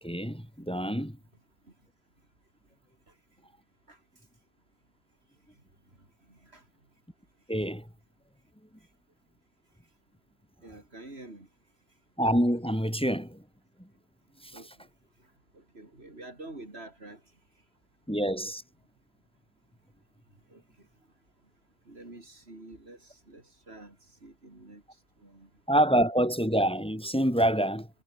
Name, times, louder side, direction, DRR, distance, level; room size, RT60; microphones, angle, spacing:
voice 1, 0.0-1.2 7.5-7.9 12.2-13.4 13.8-13.9 14.4-14.6 18.1-18.6 25.7-27.9, right 1 dB, 5° left, 3.3 m, -26 dB
voice 2, 6.3-6.6 10.6-11.5 14.5-14.9 15.5-17.2 20.5-20.6 21.9-24.0 24.2-24.8 25.2-25.5, right 2 dB, 70° right, 4.8 m, -47 dB
omnidirectional pair, 1.1 m